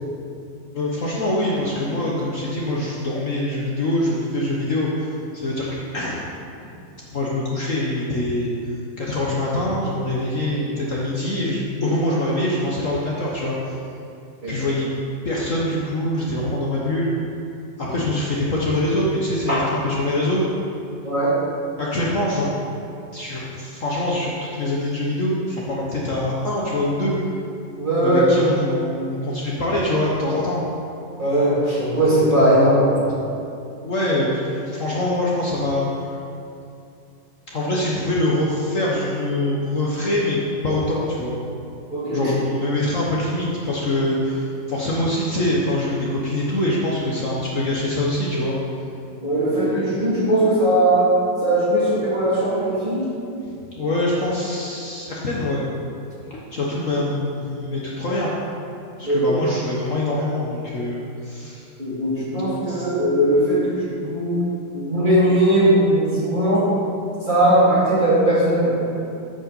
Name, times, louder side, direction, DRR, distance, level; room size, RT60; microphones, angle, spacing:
voice 1, 0.7-5.7 5.9-6.2 7.1-8.5 9.0-13.8 14.5-14.9 15.2-17.1 17.8-20.4 21.8-22.5 23.1-27.1 28.0-30.6 33.8-35.9 37.5-40.4 40.6-41.4 42.1-48.6 53.7-55.6 56.3-58.3 59.0-61.7 62.7-62.9, left 1 dB, 50° left, -5 dB, 1.3 m, -24 dB
voice 2, 21.0-21.4 27.8-28.2 31.2-33.0 41.9-42.3 49.2-51.1 51.4-53.0 59.0-59.3 61.8-64.4 64.7-66.7 67.2-68.7, right 1 dB, 25° right, -9 dB, 2.8 m, -19 dB
8.9 x 5.4 x 6.9 m, 2.6 s
omnidirectional pair, 2.0 m